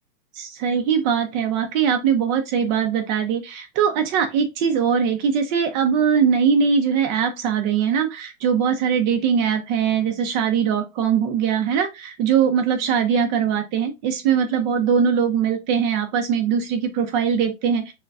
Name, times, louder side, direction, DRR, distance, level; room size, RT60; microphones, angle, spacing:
voice 1, 0.3-17.9, right 7 dB, 40° right, 0.6 m, -21 dB
5.7 x 2.2 x 2.4 m
hypercardioid pair, 130°, 34 cm